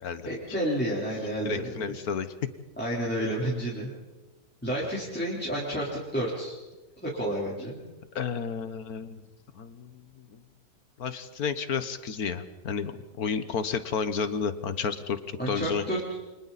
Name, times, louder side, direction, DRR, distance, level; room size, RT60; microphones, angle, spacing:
voice 1, 0.2-1.7 2.8-3.9 4.6-6.6 7.0-7.8 15.4-16.0, right 1 dB, 5° left, -7 dB, 3.9 m, -30 dB
voice 2, 1.4-2.3 8.1-9.2 9.6-10.0 10.3-10.4 11.0-12.9 13.2-15.8, left 6 dB, 70° left, 11 dB, 1.7 m, -31 dB
29.5 x 25.0 x 4.2 m, 1.2 s
omnidirectional pair, 1.7 m